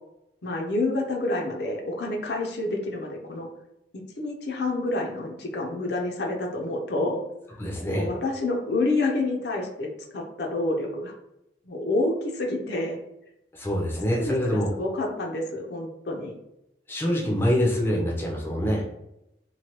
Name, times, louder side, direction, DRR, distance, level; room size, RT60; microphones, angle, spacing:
voice 1, 0.4-3.5 4.2-7.2 7.9-9.9 10.1-11.1 11.7-13.0 14.2-16.3, left 2 dB, 65° left, 1 dB, 0.6 m, -28 dB
voice 2, 7.6-8.1 13.5-14.7 16.9-18.8, equal, 10° left, -2 dB, 0.5 m, -25 dB
3.1 x 2.2 x 2.9 m, 0.85 s
head